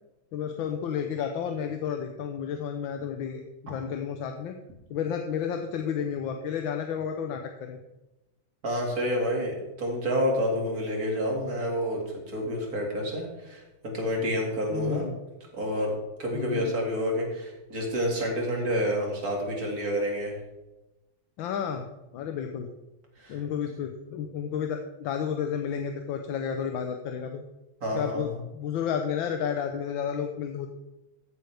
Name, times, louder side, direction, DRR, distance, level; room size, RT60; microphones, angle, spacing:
voice 1, 0.3-4.6 4.9-7.8 14.7-15.2 16.3-16.7 21.4-22.7 23.3-27.4 27.9-30.7, left 7 dB, 80° left, 5 dB, 1.5 m, -31 dB
voice 2, 8.6-15.1 15.5-20.4 23.2-23.4 27.8-28.4, equal, 50° right, -1 dB, 2.7 m, -29 dB
14.5 x 7.8 x 3.4 m, 1.0 s
omnidirectional pair, 2.1 m